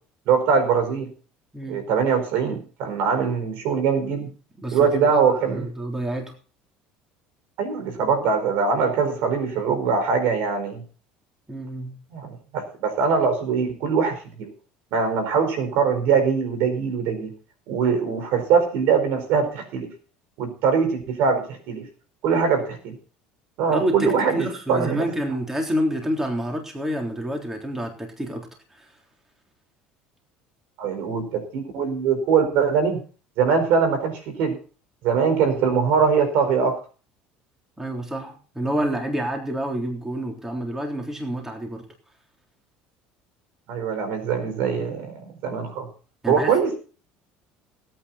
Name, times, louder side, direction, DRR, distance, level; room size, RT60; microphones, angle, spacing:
voice 1, 0.3-1.1 1.7-4.3 4.7-5.7 7.6-10.8 12.1-14.5 14.9-17.3 17.7-19.9 20.4-21.9 22.2-22.9 23.6-25.1 30.8-33.0 33.4-34.6 35.0-36.8 43.7-45.9 46.3-46.8, right 6 dB, 70° right, 8 dB, 4.6 m, -22 dB
voice 2, 1.5-1.9 4.6-5.2 5.5-6.3 11.5-12.0 23.7-28.9 37.8-41.9 46.2-46.5, equal, 10° right, 1 dB, 3.6 m, -28 dB
18.0 x 9.2 x 4.2 m, 0.38 s
supercardioid pair, 105°, 4 cm